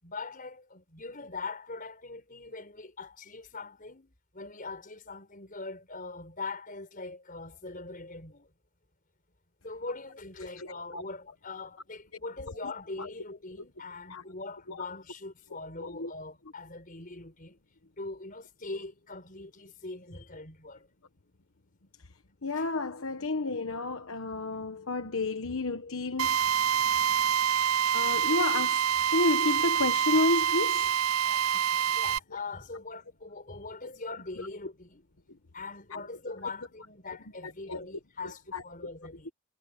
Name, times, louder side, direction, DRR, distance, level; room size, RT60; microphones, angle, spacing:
voice 1, 0.0-8.5 9.6-17.6 18.0-20.9 22.5-22.7 31.2-35.0 35.5-39.3, left 3 dB, 40° left, 5.3 m, -42 dB
voice 2, 10.6-11.0 14.1-14.2 14.7-14.8 15.8-16.1 22.4-26.4 27.9-28.8 29.1-30.9 35.9-36.0 37.7-37.8 38.5-38.6, left 2 dB, 65° left, 1.2 m, -30 dB
Drill, 26.2-32.2, right 9 dB, 70° right, 0.7 m, -26 dB
head